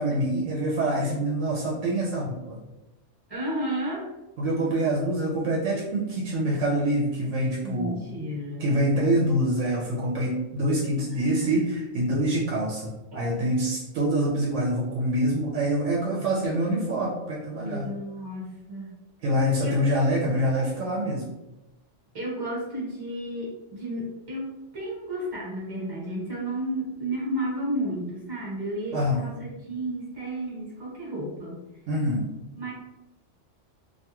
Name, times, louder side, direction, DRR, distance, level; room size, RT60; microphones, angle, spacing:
voice 1, 0.0-2.6 4.4-8.0 8.6-17.8 19.2-21.3 28.9-29.2 31.9-32.2, right 1 dB, 80° right, -3 dB, 0.9 m, -25 dB
voice 2, 3.3-4.1 7.6-8.7 11.4-11.6 13.1-13.2 17.5-18.9 19.6-19.7 22.1-24.5 24.7-31.6 32.6-32.7, right 1 dB, 20° right, -5 dB, 0.9 m, -32 dB
2.4 x 2.2 x 2.9 m, 0.96 s
omnidirectional pair, 1.3 m